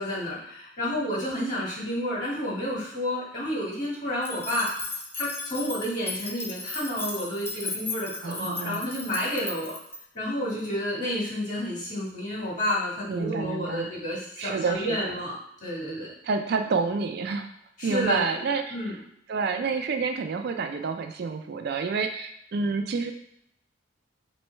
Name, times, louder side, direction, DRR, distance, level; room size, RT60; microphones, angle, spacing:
voice 1, 0.0-4.7 5.1-9.7 10.1-16.1 17.8-18.9, left 1 dB, 40° left, -5 dB, 1.6 m, -30 dB
sound 1, 4.2-10.0, left 3 dB, 10° left, 0.4 m, -36 dB
voice 2, 8.2-8.9 13.1-13.9 14.4-15.0 16.2-17.5 17.8-18.8 19.3-23.1, right 4 dB, 50° right, 6 dB, 0.3 m, -28 dB
3.1 x 3.1 x 4.3 m, 0.74 s
head